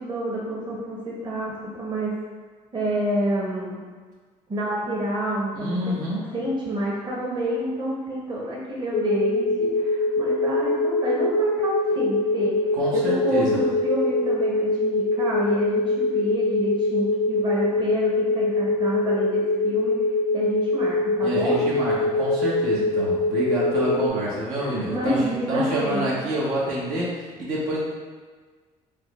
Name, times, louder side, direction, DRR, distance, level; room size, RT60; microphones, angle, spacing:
voice 1, 0.0-2.1 2.7-3.8 4.5-5.8 6.3-12.6 12.9-19.9 20.3-21.6 23.8-24.0 24.6-26.1, right 1 dB, 35° right, -5 dB, 0.8 m, -28 dB
voice 2, 5.5-6.2 12.8-13.6 21.2-25.2 25.5-27.8, right 1 dB, 75° right, -6 dB, 0.9 m, -27 dB
sound 1, 8.9-24.1, left 2 dB, 55° left, 0.4 m, -23 dB
3.4 x 2.1 x 3.0 m, 1.5 s
supercardioid pair, 85°, 14 cm